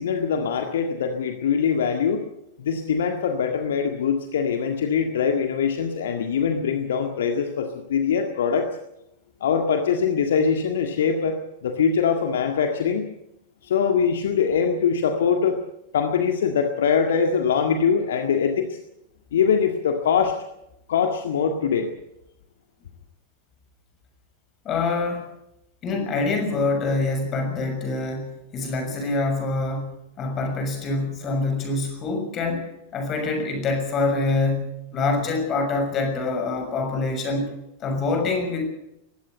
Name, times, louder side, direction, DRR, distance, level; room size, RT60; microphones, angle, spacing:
voice 1, 0.0-2.3 2.6-8.7 9.4-13.1 13.6-15.6 15.9-18.8 19.3-20.4 20.9-21.9, left 6 dB, 60° left, 5 dB, 1.8 m, -23 dB
voice 2, 24.6-25.3 25.8-37.5 37.8-38.7, left 3 dB, 30° left, 5 dB, 6.4 m, -25 dB
21.0 x 16.0 x 8.0 m, 0.85 s
figure-of-eight pair, 90°, 0 cm